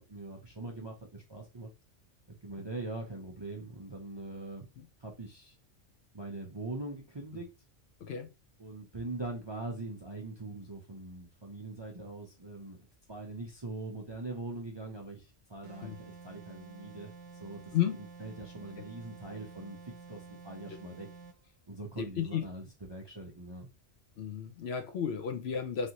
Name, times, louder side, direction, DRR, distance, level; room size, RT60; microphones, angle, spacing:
voice 1, 0.0-1.7 2.3-4.7 5.0-5.5 6.1-7.5 8.6-17.1 17.4-21.1 21.7-23.7, right 2 dB, 30° right, 0.5 m, -42 dB
sound 1, 15.6-21.4, right 4 dB, 75° right, 0.9 m, -50 dB
voice 2, 22.0-22.4 24.2-25.9, left 8 dB, 65° left, 0.7 m, -33 dB
3.2 x 2.6 x 2.8 m
omnidirectional pair, 1.3 m